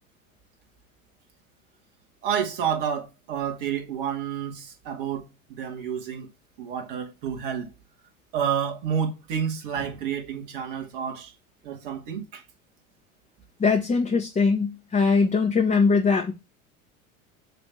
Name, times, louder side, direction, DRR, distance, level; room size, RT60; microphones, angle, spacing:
voice 1, 2.2-6.3 6.6-7.7 8.3-11.3 11.6-12.4, right 8 dB, 55° right, 2.4 m, -29 dB
voice 2, 13.6-16.3, left 4 dB, 15° left, 1.3 m, -21 dB
7.7 x 3.3 x 5.8 m
figure-of-eight pair, 75°, 43 cm